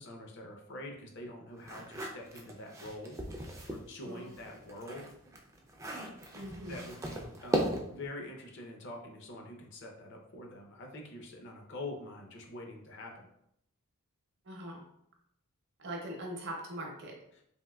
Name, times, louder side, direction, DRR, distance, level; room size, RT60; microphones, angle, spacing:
voice 1, 0.0-5.0 6.7-13.3 17.3-17.4, left 1 dB, 55° left, 1 dB, 0.6 m, -45 dB
sound 1, 1.6-3.8 4.3-8.1, right 1 dB, 15° right, 0.3 m, -37 dB
voice 2, 6.3-6.9 14.5-14.8 15.8-17.2, right 1 dB, 50° right, 1 dB, 0.6 m, -41 dB
3.5 x 2.6 x 2.2 m, 0.75 s
head